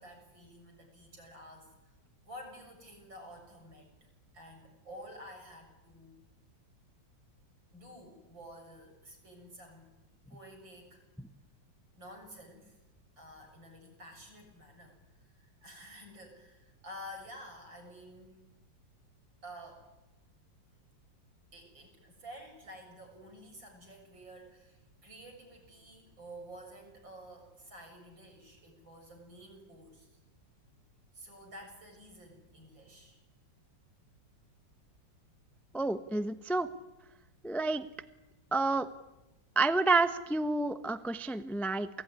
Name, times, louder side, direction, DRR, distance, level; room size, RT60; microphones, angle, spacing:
voice 1, 0.0-1.7 2.2-4.1 4.3-6.2 7.7-9.9 10.3-11.0 12.0-12.8 13.2-18.4 19.4-19.9 21.5-30.2 31.1-33.2, equal, 75° right, 3 dB, 7.9 m, -51 dB
voice 2, 35.7-36.7 37.4-37.9 38.5-38.9 39.6-41.9, right 3 dB, ahead, 10 dB, 0.6 m, -29 dB
28.0 x 19.5 x 10.0 m, 1.0 s
omnidirectional pair, 2.1 m